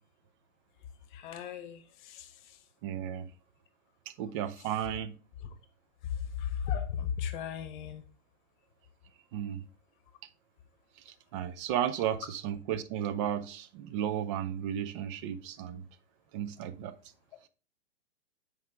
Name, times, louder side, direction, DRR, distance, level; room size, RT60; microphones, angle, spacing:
voice 1, 1.1-2.3 6.4-8.0, left 8 dB, 45° left, 1.1 m, -36 dB
voice 2, 2.8-3.3 4.2-5.1 9.3-9.6 11.1-15.8 16.3-17.0, right 10 dB, 30° right, 0.4 m, -34 dB
7.6 x 4.7 x 3.6 m
hypercardioid pair, 115°, 35 cm